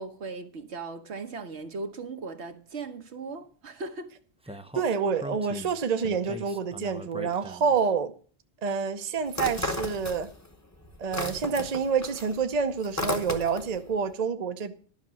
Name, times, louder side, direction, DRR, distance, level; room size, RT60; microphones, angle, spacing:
voice 1, 0.0-4.1 4.4-4.6, right 3 dB, 75° right, 1.4 m, -38 dB
Speech, 4.5-7.9, right 1 dB, 5° right, 0.5 m, -41 dB
voice 2, 4.7-8.1 8.6-10.3 11.0-14.7, right 5 dB, 40° right, 0.8 m, -28 dB
sound 1, 9.3-10.5 10.8-13.8, left 1 dB, 15° left, 1.1 m, -33 dB
11.5 x 5.9 x 7.4 m
omnidirectional pair, 1.1 m